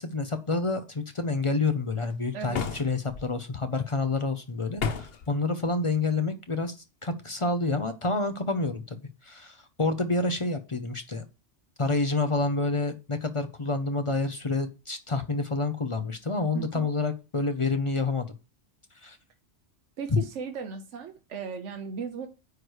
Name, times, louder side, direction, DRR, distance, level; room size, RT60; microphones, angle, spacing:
voice 1, 0.0-6.7 7.0-11.2 11.8-18.3 19.0-19.2 20.1-20.2, left 3 dB, 30° left, 0.7 m, -28 dB
sound 1, 2.5-3.3 4.8-5.3, left 6 dB, 55° left, 0.9 m, -31 dB
voice 2, 16.5-16.9 20.0-22.3, right 6 dB, 70° right, 1.2 m, -36 dB
9.6 x 3.2 x 6.3 m
omnidirectional pair, 1.3 m